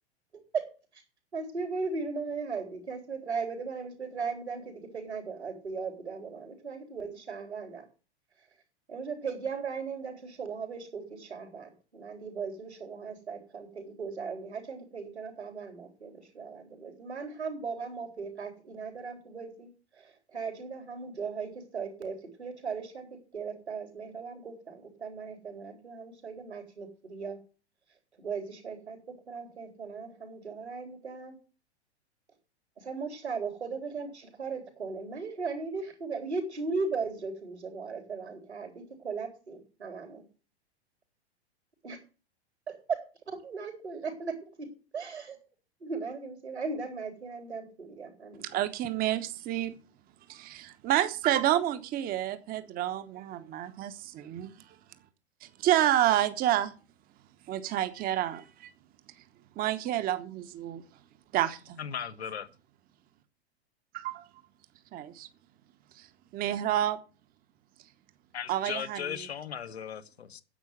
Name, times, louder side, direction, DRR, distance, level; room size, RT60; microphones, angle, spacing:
voice 1, 0.3-0.7 0.9-1.0 1.3-7.8 8.9-27.4 28.2-31.4 32.8-40.2 41.8-42.0 42.7-43.0 43.3-45.4 45.8-48.4, right 4 dB, 80° right, 4.0 m, -37 dB
voice 2, 48.5-49.7 50.3-54.5 55.4-56.7 57.5-58.7 59.6-60.8 61.3-61.8 63.9-64.2 64.9-65.3 66.3-67.0 68.5-69.0, right 12 dB, 25° right, 1.1 m, -29 dB
voice 3, 61.8-62.5 68.3-70.4, left 8 dB, 70° left, 1.3 m, -37 dB
10.5 x 8.1 x 7.8 m
figure-of-eight pair, 100°, 33 cm